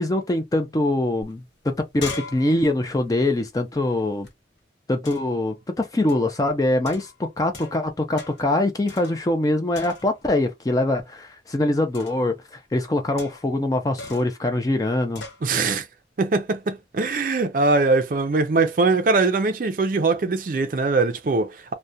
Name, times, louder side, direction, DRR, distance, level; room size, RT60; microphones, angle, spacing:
voice 1, 0.0-4.3 4.9-15.2, left 1 dB, 20° left, 0.4 m, -23 dB
sound 1, 1.2-1.3 1.6-4.3 5.0-5.4 6.1-6.4 6.8-7.9 8.2-8.5 8.9-9.5 9.7-10.3 11.9-12.3 13.2-13.6 14.0-14.4 15.1-15.4, left 3 dB, 85° left, 1.0 m, -40 dB
voice 2, 15.4-15.9 16.2-21.7, right 3 dB, 50° right, 0.4 m, -21 dB
2.3 x 2.1 x 2.6 m
head